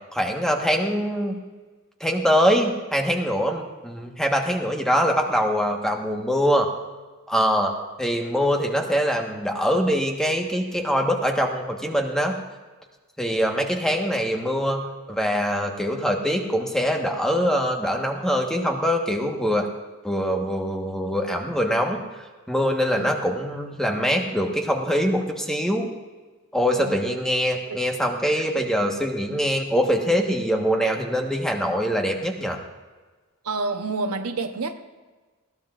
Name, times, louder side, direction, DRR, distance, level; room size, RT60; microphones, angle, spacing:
voice 1, 0.1-1.4 2.0-6.7 7.3-12.4 13.2-19.7 20.0-22.0 22.5-25.9 26.5-32.6, equal, 5° left, 1.3 m, -23 dB
voice 2, 33.4-34.7, right 3 dB, 80° right, 1.0 m, -29 dB
20.5 x 16.0 x 2.5 m
head